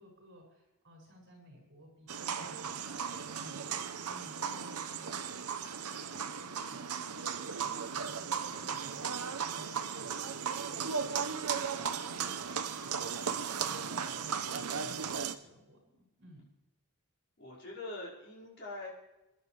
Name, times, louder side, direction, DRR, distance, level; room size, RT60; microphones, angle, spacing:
voice 1, 0.0-10.3 10.7-16.4, equal, 50° right, -1 dB, 7.0 m, -56 dB
sound 1, 2.1-15.4, right 6 dB, 85° right, 0.9 m, -36 dB
voice 2, 13.9-14.4 17.4-18.9, left 2 dB, 50° left, -5 dB, 5.6 m, -44 dB
26.5 x 11.0 x 3.4 m, 1.0 s
head